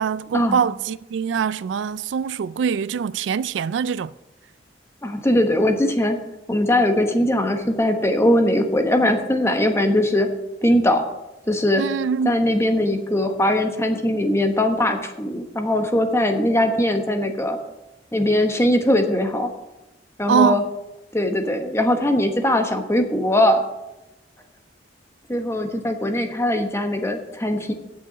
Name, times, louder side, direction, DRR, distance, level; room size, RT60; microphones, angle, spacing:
voice 1, 0.0-4.1 11.8-12.4 20.3-20.6, right 6 dB, 90° right, 0.3 m, -23 dB
voice 2, 5.0-6.2 6.5-10.3 10.6-11.0 11.5-11.8 12.2-17.6 18.1-19.5 20.2-20.6 21.1-23.6 25.3-27.7, left 1 dB, 15° left, 1.1 m, -20 dB
8.9 x 6.9 x 7.0 m
head